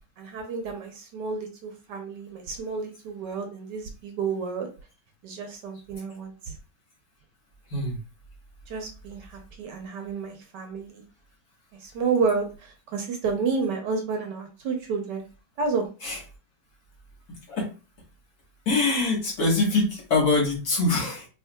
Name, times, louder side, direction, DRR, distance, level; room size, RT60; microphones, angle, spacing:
voice 1, 0.2-4.7 5.2-6.5 8.7-11.0 11.8-15.3 15.6-15.9, right 5 dB, 70° right, 4 dB, 1.3 m, -30 dB
voice 2, 18.7-21.3, left 3 dB, 50° left, -3 dB, 1.8 m, -24 dB
4.6 x 3.0 x 2.2 m, 0.33 s
omnidirectional pair, 2.1 m